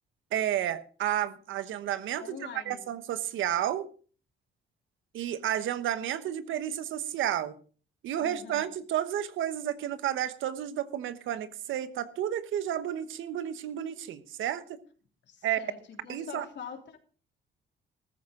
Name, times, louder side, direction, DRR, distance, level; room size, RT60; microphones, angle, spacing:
voice 1, 0.3-2.4 2.7-3.9 5.1-7.5 8.0-14.8 15.4-15.6 16.1-16.4, right 11 dB, 80° right, 1.2 m, -31 dB
voice 2, 2.2-2.8 8.2-8.7 15.2-17.0, left 6 dB, 65° left, 3.3 m, -44 dB
14.0 x 14.0 x 3.8 m
cardioid pair, 90°, 20 cm